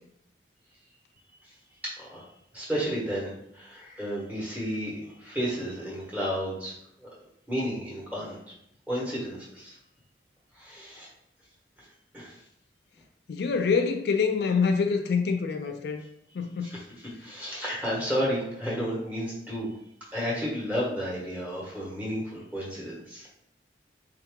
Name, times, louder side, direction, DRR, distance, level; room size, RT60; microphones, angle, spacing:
voice 1, 1.8-2.2 2.5-6.7 7.5-8.4 8.9-9.7 10.6-11.1 12.1-12.3 17.2-19.7 20.1-23.3, equal, 10° right, 1.3 m, -32 dB
voice 2, 13.3-16.0 16.3-16.8, left 5 dB, 65° left, 0.3 m, -26 dB
3.6 x 2.8 x 3.6 m
head